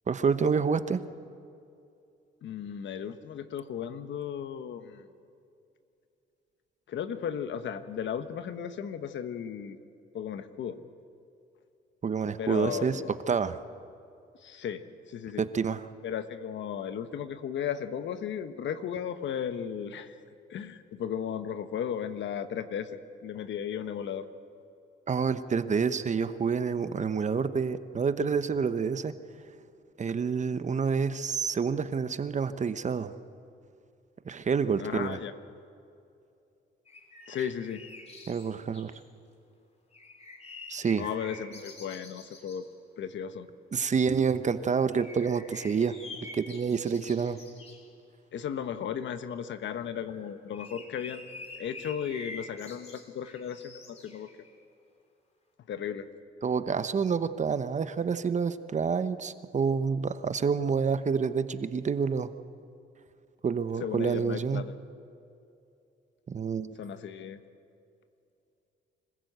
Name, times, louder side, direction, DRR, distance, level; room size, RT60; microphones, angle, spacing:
voice 1, 0.1-1.0 12.0-13.0 13.3-13.6 15.4-15.8 25.1-29.1 30.0-33.1 34.3-35.2 38.3-38.9 40.7-41.1 43.7-46.0 46.3-47.4 56.4-62.3 63.4-64.6 66.3-66.7, right 6 dB, 35° right, 12 dB, 1.0 m, -28 dB
voice 2, 2.4-5.0 6.9-9.8 10.1-10.8 12.4-13.1 14.4-15.4 16.0-20.2 20.5-22.9 23.2-24.3 34.8-35.3 37.3-37.8 41.0-42.6 43.0-43.5 48.3-54.3 55.7-56.1 63.8-64.6 66.8-67.4, left 8 dB, 70° left, 10 dB, 1.3 m, -35 dB
sound 1, 36.9-39.1 39.9-42.7 44.9-47.9 50.1-54.6, left 3 dB, 30° left, 3.3 m, -47 dB
26.0 x 15.0 x 8.1 m, 2.6 s
cardioid pair, 90°, 20 cm